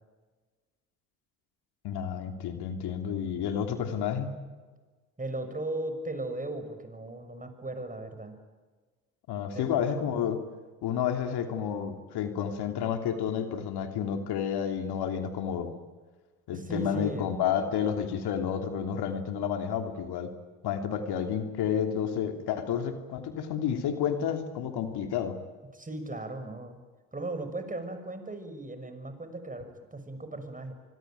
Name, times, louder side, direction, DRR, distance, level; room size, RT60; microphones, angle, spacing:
voice 1, 1.8-4.3 9.3-10.4 10.8-15.8 16.5-20.3 20.6-25.4, left 8 dB, 65° left, 6 dB, 3.0 m, -30 dB
voice 2, 5.2-8.3 9.5-9.7 16.5-17.3 25.7-26.8 27.1-30.7, right 2 dB, 20° right, 8 dB, 6.3 m, -37 dB
25.0 x 24.0 x 9.2 m, 1.4 s
hypercardioid pair, 55°, 42 cm